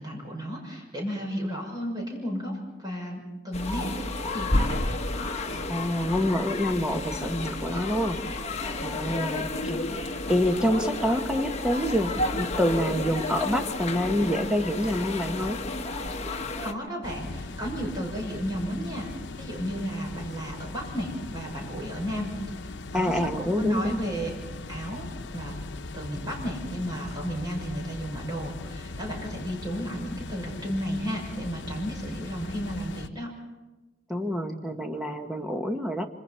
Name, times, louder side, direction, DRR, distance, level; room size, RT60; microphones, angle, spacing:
voice 1, 0.0-2.5 2.8-4.8 16.6-19.1 19.4-22.3 22.9-24.3 24.7-25.1 25.3-25.6 25.9-33.3, equal, 25° right, -1 dB, 6.4 m, -33 dB
sound 1, 3.5-16.7, left 2 dB, 35° left, 1.3 m, -31 dB
voice 2, 5.7-8.2 8.8-15.6 22.9-24.0 34.1-36.1, equal, 5° right, 5 dB, 1.2 m, -27 dB
sound 2, 17.0-33.1, left 3 dB, 90° left, 0.8 m, -39 dB
26.0 x 26.0 x 4.4 m, 1.1 s
head